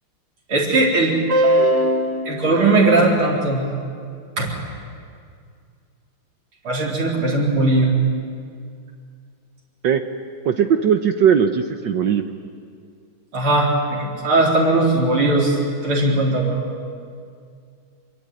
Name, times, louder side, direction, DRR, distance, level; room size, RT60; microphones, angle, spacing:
voice 1, 0.5-3.6 4.4-4.5 6.6-7.9 13.3-16.6, right 2 dB, 80° right, -5 dB, 4.8 m, -18 dB
voice 2, 10.4-12.2, right 8 dB, 65° right, 7 dB, 1.5 m, -18 dB
26.0 x 22.5 x 9.2 m, 2.3 s
omnidirectional pair, 2.3 m